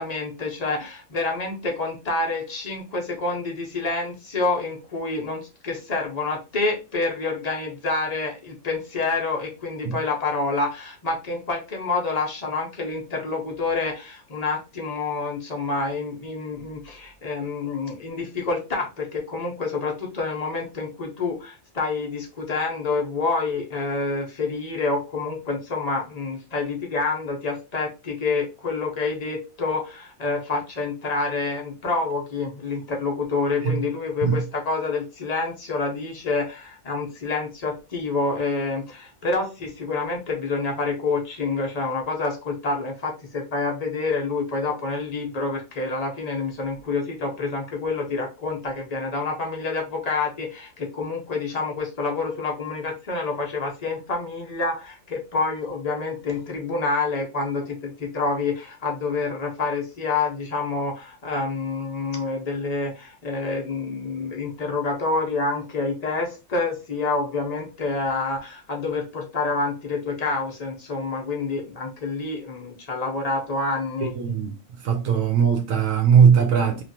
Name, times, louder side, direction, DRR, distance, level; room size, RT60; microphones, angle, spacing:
voice 1, 0.0-74.1, left 3 dB, 35° left, 0.7 m, -27 dB
voice 2, 74.1-74.5 74.8-76.8, right 7 dB, 75° right, 1.0 m, -19 dB
3.0 x 2.4 x 2.6 m
omnidirectional pair, 1.4 m